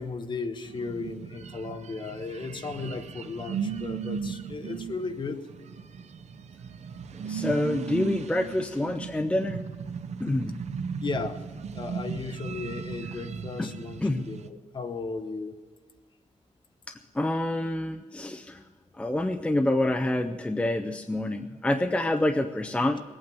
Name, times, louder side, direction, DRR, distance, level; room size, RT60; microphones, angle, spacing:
voice 1, 0.0-5.4 11.0-11.4 11.7-15.5, left 4 dB, 40° left, 7 dB, 1.0 m, -35 dB
sound 1, 0.7-14.5, right 6 dB, 60° right, 0.6 m, -37 dB
voice 2, 7.2-9.6 10.2-10.6 13.6-13.7 14.0-14.3 16.9-18.6 19.0-23.0, left 1 dB, 10° left, 6 dB, 0.5 m, -27 dB
20.5 x 8.9 x 7.5 m, 1.5 s
wide cardioid pair, 175°, 13 cm